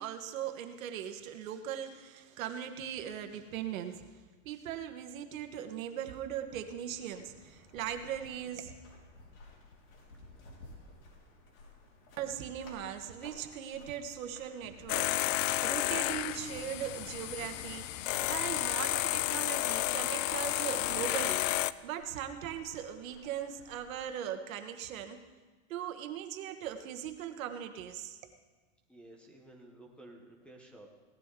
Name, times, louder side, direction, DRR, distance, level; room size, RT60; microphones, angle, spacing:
voice 1, 0.0-4.0 4.4-8.7 12.2-25.2 25.7-28.2, right 9 dB, 85° right, 8 dB, 1.4 m, -39 dB
sound 1, 6.4-24.0, left 2 dB, 90° left, 4.3 m, -56 dB
sound 2, 14.9-21.7, left 16 dB, 70° left, 0.5 m, -32 dB
voice 2, 28.9-30.9, right 1 dB, 5° left, 1 dB, 0.7 m, -53 dB
17.5 x 13.0 x 3.7 m, 1.3 s
supercardioid pair, 180°, 39 cm